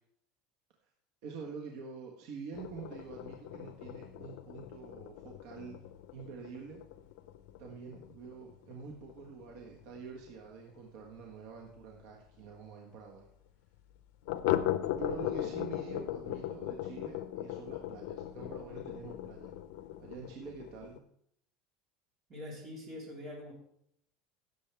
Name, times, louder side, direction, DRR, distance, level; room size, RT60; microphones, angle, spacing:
voice 1, 1.2-5.8 6.1-6.8 7.6-13.3 15.0-19.5 20.0-21.0, right 5 dB, 65° right, 0 dB, 1.5 m, -46 dB
sound 1, 2.5-11.8 12.1-12.2 12.5-12.6 13.0-13.1 14.3-21.0, left 13 dB, 75° left, 0.6 m, -38 dB
voice 2, 22.3-23.5, left 1 dB, 30° right, -3 dB, 4.0 m, -44 dB
16.5 x 7.4 x 3.5 m, 0.73 s
cardioid pair, 150°, 0 cm